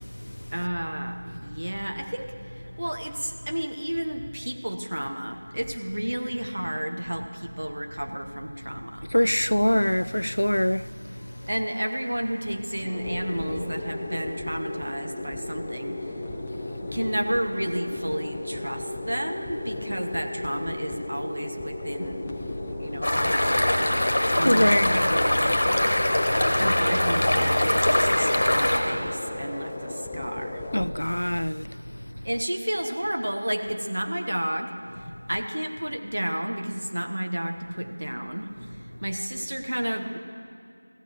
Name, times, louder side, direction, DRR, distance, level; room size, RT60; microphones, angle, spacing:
voice 1, 0.5-9.1 11.5-16.1 16.8-25.5 26.5-30.6 32.2-34.7 35.3-38.5 39.0-40.2, right 1 dB, 55° right, 1.1 m, -31 dB
voice 2, 9.1-10.9 11.2-11.3 24.4-25.2 30.7-31.7, equal, 90° left, 0.3 m, -23 dB
sound 1, 11.2-30.8, left 2 dB, 5° left, 0.3 m, -36 dB
sound 2, 23.0-28.8, left 1 dB, 40° left, 1.4 m, -22 dB
14.5 x 7.1 x 7.7 m
figure-of-eight pair, 175°, 0 cm